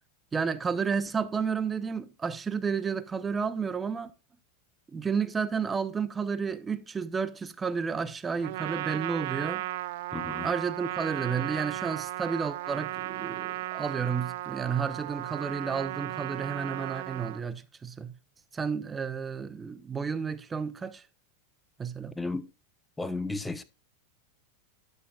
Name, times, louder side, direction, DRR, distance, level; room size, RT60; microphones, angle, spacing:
voice 1, 0.3-4.1 4.9-9.6 10.4-18.1 18.5-21.0 21.8-22.1, right 6 dB, 20° right, 0.8 m, -31 dB
Trumpet, 8.4-17.4, right 17 dB, 65° right, 0.4 m, -35 dB
voice 2, 10.1-10.5 22.2-22.4 23.0-23.6, left 3 dB, 10° left, 0.9 m, -33 dB
11.5 x 6.7 x 2.4 m
hypercardioid pair, 110°, 0 cm